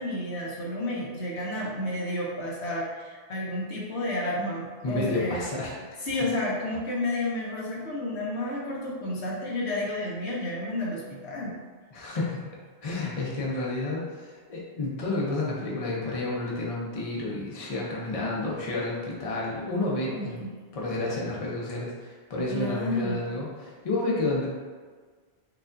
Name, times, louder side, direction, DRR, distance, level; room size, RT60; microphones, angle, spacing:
voice 1, 0.0-5.5 6.0-11.5 20.1-20.5 22.5-23.2, left 1 dB, 90° left, -4 dB, 1.1 m, -31 dB
voice 2, 4.8-5.7 11.9-12.4 12.8-20.4 20.7-24.5, left 2 dB, 40° left, -4 dB, 0.7 m, -30 dB
4.7 x 2.4 x 2.5 m, 1.5 s
omnidirectional pair, 1.1 m